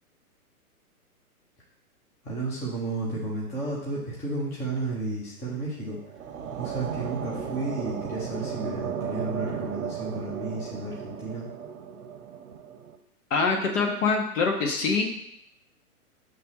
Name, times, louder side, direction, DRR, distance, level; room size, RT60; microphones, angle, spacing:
voice 1, 2.2-6.0 6.6-11.4, right 2 dB, 5° left, -6 dB, 0.6 m, -32 dB
sound 1, 5.8-13.0, right 7 dB, 60° right, 0.8 m, -35 dB
voice 2, 13.3-15.1, left 4 dB, 55° left, 1 dB, 1.5 m, -24 dB
5.9 x 3.3 x 5.6 m, 0.75 s
hypercardioid pair, 145°, 45 cm